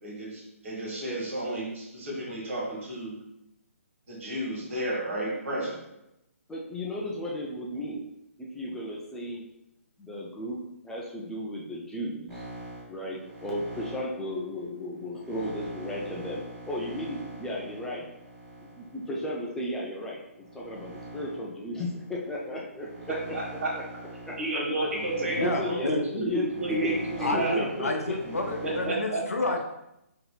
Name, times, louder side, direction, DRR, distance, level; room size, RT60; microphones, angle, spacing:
voice 1, 0.0-3.2 4.1-5.8 23.1-23.7 24.4-27.6 28.6-29.2, right 1 dB, 65° right, -3 dB, 1.3 m, -31 dB
voice 2, 6.5-8.0 8.4-9.4 10.0-10.6 10.8-12.4 12.9-18.1 18.6-20.2 20.5-22.9 23.3-23.4 23.7-23.8 24.3-24.4 25.4-28.1, left 1 dB, 5° left, -4 dB, 0.3 m, -35 dB
sound 1, 12.3-19.7 20.3-28.9, right 1 dB, 25° right, 1.5 m, -43 dB
voice 3, 25.3-26.0 27.2-29.6, left 2 dB, 85° left, 3 dB, 0.6 m, -29 dB
4.0 x 2.7 x 2.2 m, 0.86 s
figure-of-eight pair, 140°, 8 cm